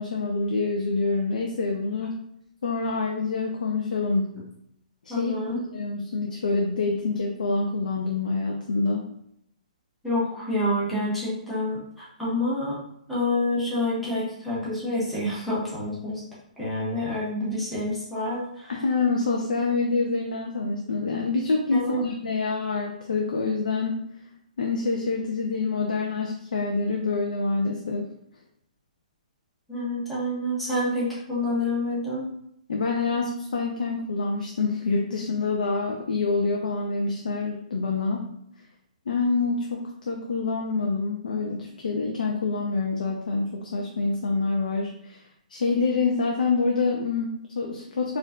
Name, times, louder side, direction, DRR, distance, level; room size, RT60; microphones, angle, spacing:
voice 1, 0.0-2.2 2.6-4.4 5.0-9.1 18.7-24.0 24.6-28.1 32.7-38.3 39.1-45.2 45.5-48.2, left 3 dB, 75° left, 0 dB, 0.5 m, -26 dB
voice 2, 5.1-5.6 10.0-12.8 13.1-16.2 16.6-18.7 21.7-22.0 29.7-32.3, left 1 dB, ahead, -9 dB, 0.6 m, -28 dB
4.4 x 2.5 x 2.3 m, 0.74 s
hypercardioid pair, 180°, 4 cm